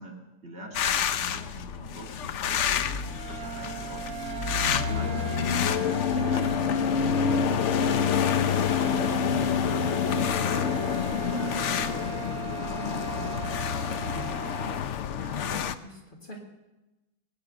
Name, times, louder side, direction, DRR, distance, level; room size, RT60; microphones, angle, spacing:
voice 1, 0.0-4.2 4.5-6.7 7.0-7.9 8.2-12.3 12.6-14.4, right 1 dB, 45° right, -1 dB, 2.8 m, -43 dB
sound 1, 0.7-15.7, left 8 dB, 60° left, 0.9 m, -27 dB
sound 2, 3.0-14.8, right 11 dB, 80° right, 1.7 m, -38 dB
voice 2, 15.2-16.4, left 1 dB, 35° left, 0 dB, 2.4 m, -42 dB
19.0 x 9.5 x 6.7 m, 1.0 s
omnidirectional pair, 1.6 m